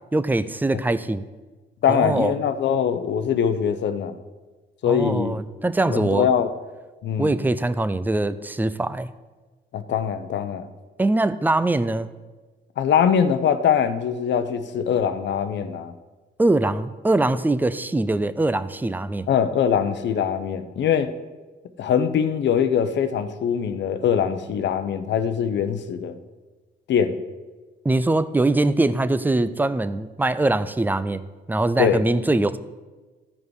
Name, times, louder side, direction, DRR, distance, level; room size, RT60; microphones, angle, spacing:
voice 1, 0.1-1.2 1.9-2.3 4.9-6.3 7.2-9.1 11.0-12.1 16.4-19.3 27.8-31.2 31.5-32.6, right 2 dB, 10° right, 14 dB, 0.5 m, -22 dB
voice 2, 1.8-4.2 4.8-5.4 5.9-6.5 7.0-7.4 9.7-10.7 12.8-15.9 19.3-21.1 21.8-26.2 26.9-27.1 31.8-32.0, left 8 dB, 65° left, 9 dB, 0.8 m, -22 dB
14.5 x 5.2 x 4.8 m, 1.3 s
cardioid pair, 90°, 20 cm